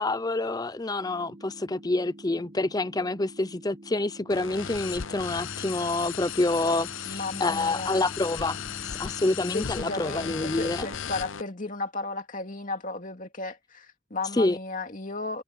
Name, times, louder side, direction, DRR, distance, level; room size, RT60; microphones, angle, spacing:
voice 1, 0.0-8.6 9.0-10.9 14.4-14.6, left 2 dB, 20° left, 0.5 m, -27 dB
sound 1, 1.0-11.0, right 1 dB, 40° right, 2.4 m, -49 dB
sound 2, 4.3-11.4, left 8 dB, 70° left, 0.8 m, -36 dB
voice 2, 7.1-8.1 9.5-15.4, left 3 dB, 40° left, 2.5 m, -34 dB
head